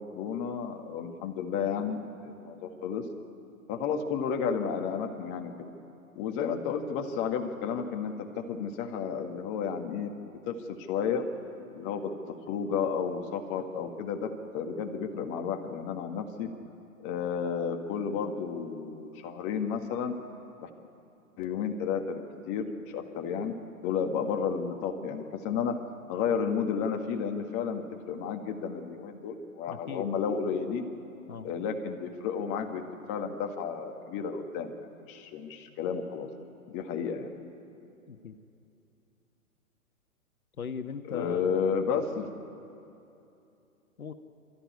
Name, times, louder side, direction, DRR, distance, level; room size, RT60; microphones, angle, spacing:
voice 1, 0.0-3.0 3.7-5.5 6.2-10.1 10.5-11.3 11.7-12.1 12.5-14.3 14.5-16.5 17.0-20.1 20.6-20.7 21.4-22.2 22.5-23.5 23.8-25.8 26.1-30.9 31.4-36.3 36.7-37.3 41.1-42.3, left 6 dB, 30° left, 5 dB, 1.7 m, -32 dB
voice 2, 29.7-30.1 31.3-31.5 38.1-38.4 40.6-41.6 42.0-42.1 44.0-44.1, left 6 dB, 75° left, 7 dB, 1.5 m, -39 dB
25.5 x 14.0 x 9.6 m, 2.7 s
hypercardioid pair, 125°, 43 cm